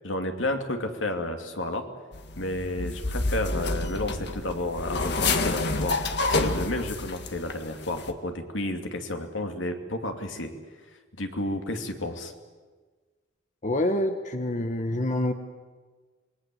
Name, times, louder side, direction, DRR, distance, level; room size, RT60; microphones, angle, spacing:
voice 1, 0.0-1.8 2.4-6.0 6.3-10.5 11.2-12.3, left 1 dB, 80° left, 5 dB, 2.7 m, -31 dB
sound 1, 2.1-7.5 7.8-8.1, left 3 dB, 60° left, 1.7 m, -28 dB
voice 2, 13.6-15.3, left 1 dB, 40° left, 7 dB, 1.2 m, -26 dB
27.5 x 21.5 x 7.8 m, 1.4 s
head